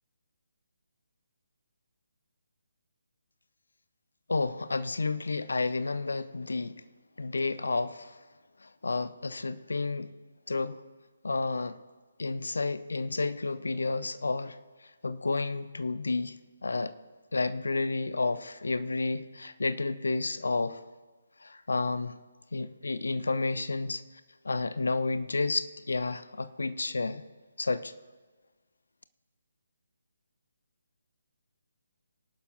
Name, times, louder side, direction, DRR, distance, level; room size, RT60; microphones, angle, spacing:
voice 1, 4.3-6.8 7.2-8.1 8.6-10.1 10.5-10.8 11.2-11.8 12.2-14.6 15.0-16.9 17.3-20.8 21.4-22.2 22.5-24.0 24.5-27.2 27.6-27.9, left 3 dB, 65° left, 0.6 m, -31 dB
21.5 x 11.5 x 2.5 m
figure-of-eight pair, 145°, 0 cm